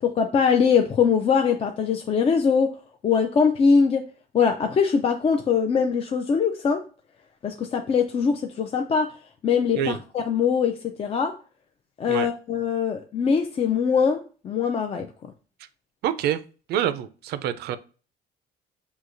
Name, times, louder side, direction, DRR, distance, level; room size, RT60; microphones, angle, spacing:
voice 1, 0.0-2.7 3.0-4.0 4.3-6.8 7.4-9.1 9.4-11.3 12.0-15.1, left 6 dB, 35° left, 0.4 m, -22 dB
voice 2, 16.0-16.4 16.7-17.8, right 10 dB, 70° right, 0.4 m, -26 dB
6.3 x 2.8 x 2.5 m
cardioid pair, 110°, 17 cm